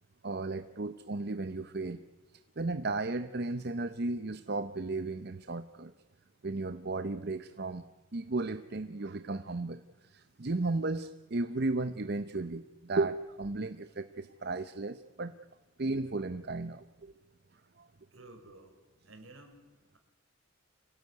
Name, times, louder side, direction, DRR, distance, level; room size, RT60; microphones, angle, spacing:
voice 1, 0.2-2.0 2.6-5.9 6.4-7.8 8.1-15.3 15.8-17.1 17.8-17.9, right 3 dB, 50° right, 11 dB, 0.7 m, -34 dB
voice 2, 18.1-18.8 19.0-19.6, right 2 dB, 75° right, 4 dB, 4.9 m, -53 dB
26.0 x 17.5 x 9.5 m, 1.1 s
head